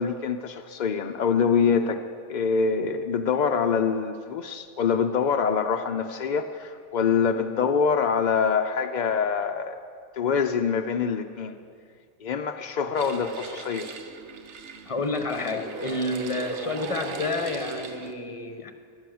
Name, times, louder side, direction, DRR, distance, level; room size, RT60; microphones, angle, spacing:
voice 1, 0.0-2.0 2.3-9.8 10.2-11.6 12.2-13.9, left 6 dB, 65° left, 7 dB, 0.4 m, -25 dB
sound 1, 12.9-18.1, right 4 dB, 60° right, 1.1 m, -38 dB
voice 2, 14.9-18.7, left 2 dB, 25° left, 7 dB, 1.0 m, -29 dB
15.5 x 11.0 x 7.7 m, 2.3 s
omnidirectional pair, 1.4 m